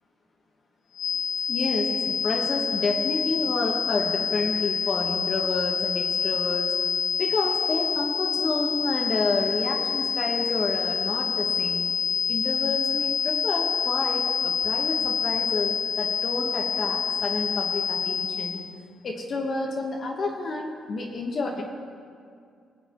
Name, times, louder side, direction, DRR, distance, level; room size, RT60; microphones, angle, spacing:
sound 1, 0.9-18.7, left 6 dB, 90° left, 1.3 m, -27 dB
voice 1, 1.5-6.7 7.2-11.9 12.3-18.6 19.0-21.6, left 3 dB, 50° left, 0 dB, 1.2 m, -29 dB
22.5 x 7.6 x 3.0 m, 2.3 s
cardioid pair, 90°, 0 cm